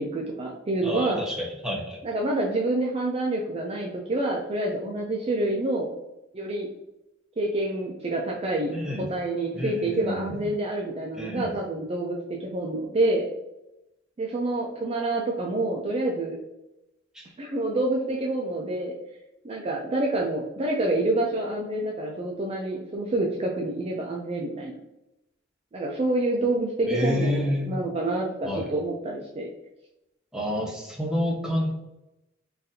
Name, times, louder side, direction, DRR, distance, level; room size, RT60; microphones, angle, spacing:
voice 1, 0.0-1.2 2.0-5.9 6.3-6.7 7.4-13.3 14.2-16.4 17.4-18.9 19.4-24.8 25.7-29.5, right 2 dB, 30° right, -1 dB, 0.4 m, -27 dB
voice 2, 0.8-1.3 1.6-2.0 8.7-9.1 9.5-10.4 11.1-11.5 17.1-17.2 26.9-27.8 28.4-28.7 30.3-31.7, left 1 dB, 5° right, -3 dB, 0.7 m, -28 dB
3.9 x 2.5 x 2.7 m, 0.92 s
head